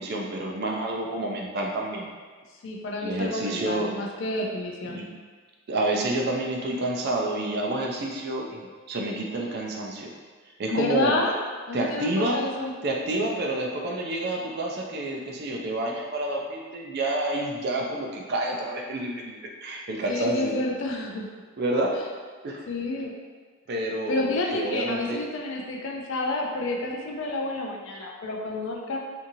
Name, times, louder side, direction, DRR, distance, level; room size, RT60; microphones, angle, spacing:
voice 1, 0.0-2.1 3.0-4.0 4.9-5.1 5.7-8.6 8.9-10.1 10.6-11.2 11.7-12.4 12.8-20.6 21.6-22.0 22.4-22.7 23.7-25.2, right 1 dB, 45° right, 0 dB, 0.4 m, -29 dB
voice 2, 2.6-5.0 10.7-11.3 11.7-12.7 20.1-21.3 22.7-23.1 24.1-29.0, left 2 dB, 55° left, 0 dB, 0.4 m, -29 dB
2.8 x 2.5 x 2.6 m, 1.5 s
head